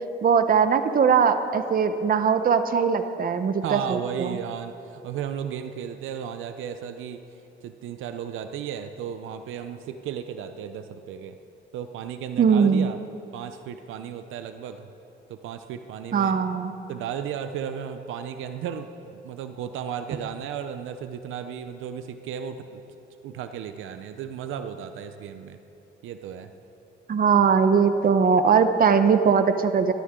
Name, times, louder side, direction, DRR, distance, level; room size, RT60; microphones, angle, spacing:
voice 1, 0.2-4.4 12.4-12.9 16.1-16.8 27.1-29.9, right 6 dB, 45° right, 9 dB, 1.0 m, -20 dB
voice 2, 3.6-11.4 11.7-13.0 13.3-14.9 15.3-16.3 16.9-22.8 23.2-25.6 26.0-26.5, right 8 dB, 85° right, 8 dB, 0.7 m, -34 dB
23.0 x 13.0 x 3.8 m, 2.8 s
cardioid pair, 90°, 20 cm